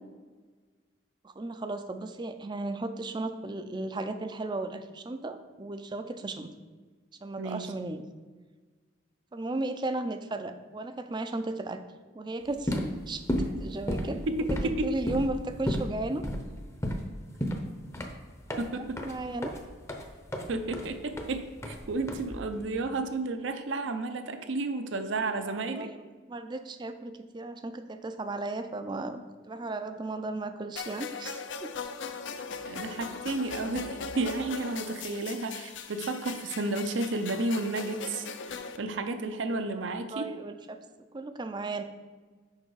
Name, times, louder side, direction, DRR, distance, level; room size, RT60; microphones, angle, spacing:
voice 1, 1.2-6.5 7.2-8.0 9.3-11.8 12.1-14.2 14.5-16.2 18.7-19.5 25.5-26.0 26.3-31.7 39.9-40.8 41.1-41.8, right 2 dB, 20° right, 9 dB, 0.4 m, -35 dB
voice 2, 7.4-7.7 14.3-15.0 18.6-19.0 20.5-25.9 32.6-40.3, right 2 dB, 70° right, 8 dB, 0.6 m, -32 dB
sound 1, 12.5-22.7, equal, 15° left, 0.6 m, -34 dB
sound 2, 30.8-38.8, left 5 dB, 65° left, 0.5 m, -39 dB
6.6 x 5.6 x 4.6 m, 1.4 s
head